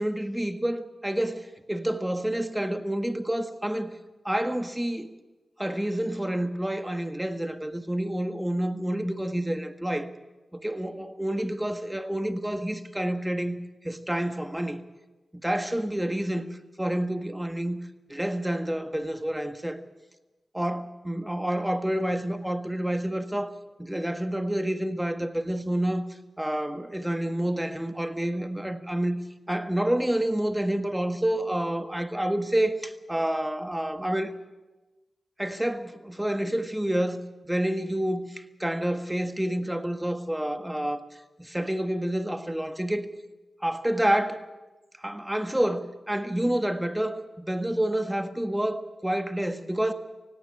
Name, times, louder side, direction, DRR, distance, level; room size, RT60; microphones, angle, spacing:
voice 1, 0.0-3.9 4.2-5.1 5.6-10.1 10.5-14.8 15.4-16.4 16.8-17.8 18.1-19.8 20.5-23.5 23.8-26.0 26.4-29.2 29.5-34.3 35.4-41.0 41.4-43.1 43.6-44.4 45.0-49.9, right 1 dB, 10° right, 8 dB, 1.6 m, -28 dB
17.5 x 17.5 x 8.6 m, 1.1 s
wide cardioid pair, 70°, 0 cm